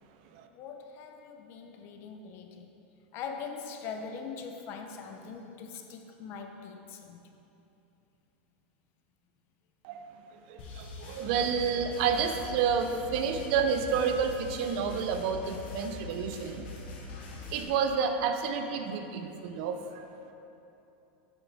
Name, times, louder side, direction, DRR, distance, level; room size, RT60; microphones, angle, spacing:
voice 1, 0.5-2.7 3.1-7.3, left 5 dB, 45° left, 4 dB, 0.7 m, -42 dB
sound 1, 10.6-17.6, left 3 dB, 65° left, 1.3 m, -43 dB
voice 2, 10.8-16.6 17.5-19.8, right 6 dB, 60° right, 6 dB, 0.6 m, -29 dB
8.3 x 6.1 x 3.5 m, 2.9 s
supercardioid pair, 140°, 6 cm